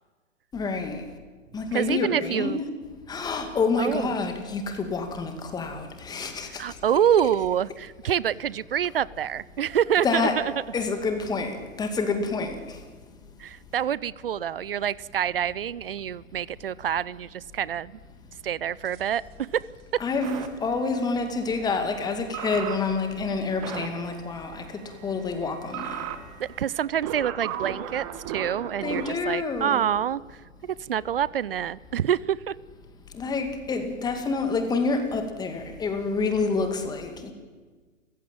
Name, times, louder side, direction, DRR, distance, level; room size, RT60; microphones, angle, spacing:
voice 1, 0.5-1.1 1.5-2.6 3.1-6.6 10.0-10.5 10.7-12.8 20.0-26.0 28.8-29.9 33.1-37.3, left 4 dB, 10° left, 6 dB, 2.3 m, -28 dB
voice 2, 1.7-2.6 3.8-4.1 6.5-10.5 13.4-18.0 18.4-19.2 19.5-19.7 26.4-30.2 30.6-32.5, right 9 dB, 45° right, 22 dB, 0.7 m, -26 dB
sound 1, 18.9-19.2 20.2-29.1, right 10 dB, 25° right, 1.8 m, -38 dB
29.0 x 15.5 x 8.9 m, 1.4 s
figure-of-eight pair, 125°, 39 cm